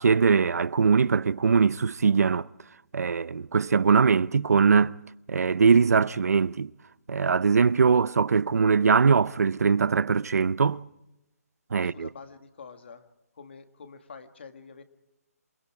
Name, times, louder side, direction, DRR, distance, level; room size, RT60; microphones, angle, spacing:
voice 1, 0.0-2.5 2.9-5.0 5.3-6.7 7.1-10.8 11.7-12.1, right 5 dB, 70° right, 0.7 m, -21 dB
voice 2, 11.7-13.1 13.3-14.8, left 5 dB, 45° left, 1.9 m, -46 dB
28.0 x 21.0 x 4.8 m
hypercardioid pair, 180°, 9 cm